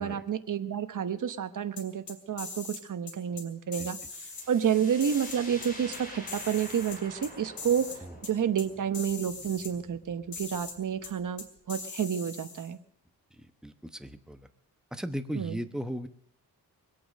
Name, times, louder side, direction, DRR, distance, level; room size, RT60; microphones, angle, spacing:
voice 1, 0.0-7.9 8.2-12.8 15.3-15.6, right 8 dB, 55° right, 10 dB, 1.0 m, -30 dB
sound 1, 1.8-2.8 3.1-3.4 3.7-4.4 5.0-6.0 6.3-7.3 7.6-8.0 8.2-8.3 8.6-8.7 8.9-9.7 10.3-10.7 11.0-11.1 11.4-12.7, left 4 dB, 65° left, 2.8 m, -41 dB
sound 2, 4.1-11.7, left 1 dB, 20° left, 5.4 m, -47 dB
voice 2, 13.6-14.5 14.9-16.1, equal, ahead, 8 dB, 0.9 m, -36 dB
21.5 x 8.6 x 6.4 m, 0.65 s
wide cardioid pair, 105°, 38 cm